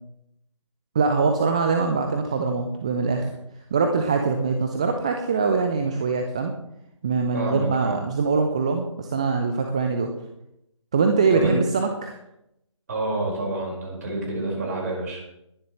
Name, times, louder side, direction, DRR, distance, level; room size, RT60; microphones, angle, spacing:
voice 1, 0.9-3.3 3.7-6.5 7.0-10.1 10.9-12.2, right 4 dB, 10° right, 5 dB, 0.4 m, -23 dB
voice 2, 7.3-8.0 11.3-11.6 12.9-15.2, right 2 dB, 30° right, -2 dB, 4.8 m, -28 dB
20.5 x 10.5 x 3.1 m, 0.82 s
figure-of-eight pair, 150°, 17 cm